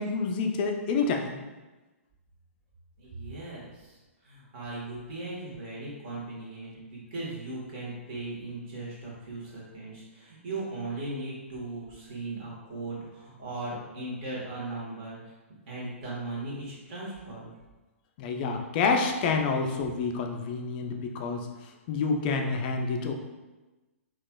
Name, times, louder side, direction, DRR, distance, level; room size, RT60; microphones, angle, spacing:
voice 1, 0.0-1.4 18.2-21.5 21.9-23.1, left 4 dB, 40° left, 3 dB, 0.4 m, -28 dB
voice 2, 3.0-4.0 4.2-15.2 15.7-17.5, right 2 dB, 45° right, -5 dB, 1.3 m, -38 dB
3.8 x 2.4 x 2.2 m, 1.2 s
figure-of-eight pair, 120°, 8 cm